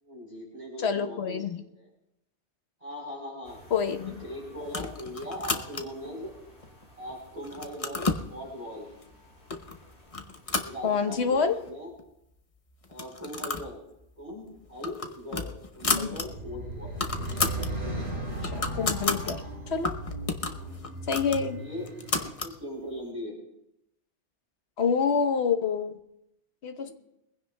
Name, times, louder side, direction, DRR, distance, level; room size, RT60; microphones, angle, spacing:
voice 1, 0.0-1.9 2.8-3.6 4.0-6.4 7.0-8.9 10.6-11.9 12.9-13.8 14.2-17.0 20.4-20.7 21.6-23.4 26.8-26.9, equal, 35° right, -4 dB, 3.9 m, -40 dB
voice 2, 0.8-1.6 3.7-4.2 10.8-11.6 15.9-16.2 18.4-19.4 19.7-19.9 21.1-21.6 24.8-26.0 26.6-26.9, left 6 dB, 65° left, 7 dB, 1.3 m, -27 dB
sound 1, 3.4-11.7, left 1 dB, 85° left, 4.0 m, -55 dB
sound 2, 4.7-6.1 6.6-7.1 7.4-8.3 9.0-9.1 9.5-9.8 10.1-11.3 11.7-11.8 12.0-12.1 12.8-13.7 14.0-14.2 14.6-16.3 16.6-16.7 16.9-17.7 18.1-19.4 19.8-22.6, left 3 dB, 35° left, 0.9 m, -32 dB
sound 3, 15.8-22.3, right 1 dB, 60° right, 4.3 m, -36 dB
22.5 x 16.0 x 2.3 m, 0.81 s
omnidirectional pair, 1.2 m